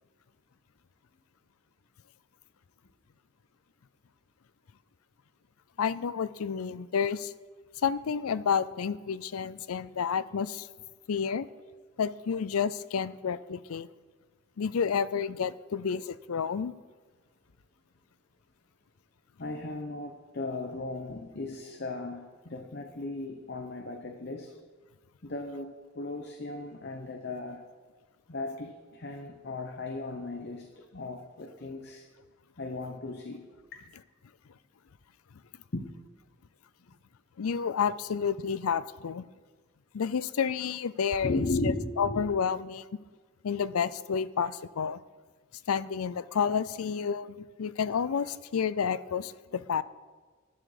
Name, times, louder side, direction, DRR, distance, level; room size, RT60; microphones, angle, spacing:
voice 1, 5.8-7.3 7.8-10.7 11.1-11.5 12.0-13.9 14.6-16.7 37.4-39.3 39.9-42.8 43.4-45.0 45.7-49.8, left 6 dB, 90° left, 16 dB, 0.5 m, -30 dB
voice 2, 19.4-24.5 25.2-27.6 28.3-32.1 32.6-33.9 35.7-36.0 41.2-42.3, left 2 dB, 50° left, 4 dB, 0.9 m, -36 dB
11.0 x 11.0 x 5.0 m, 1.4 s
head